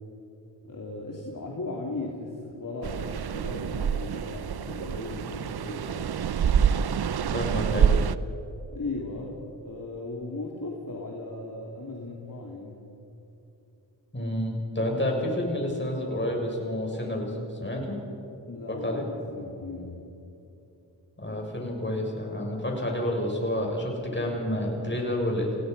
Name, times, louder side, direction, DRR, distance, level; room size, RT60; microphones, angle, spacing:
voice 1, 0.6-6.1 8.7-12.8 18.5-20.0, left 2 dB, 45° left, -2 dB, 3.1 m, -37 dB
sound 1, 2.8-8.1, right 8 dB, 60° right, 0.7 m, -26 dB
voice 2, 7.3-8.0 14.1-18.0 18.7-19.0 21.2-25.6, left 1 dB, 25° left, 0 dB, 6.7 m, -29 dB
27.5 x 17.5 x 5.5 m, 2.9 s
cardioid pair, 45°, 43 cm